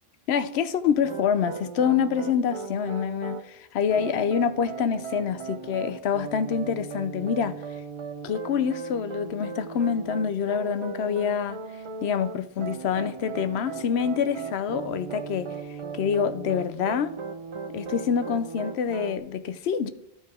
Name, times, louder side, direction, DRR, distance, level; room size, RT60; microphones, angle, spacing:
voice 1, 0.3-7.6 8.2-11.6 12.0-15.5 15.9-17.1 17.7-19.9, left 7 dB, 80° left, 0.9 m, -26 dB
sound 1, 1.0-3.4 3.9-19.2, right 5 dB, 55° right, 0.3 m, -37 dB
13.0 x 4.7 x 3.6 m
omnidirectional pair, 1.1 m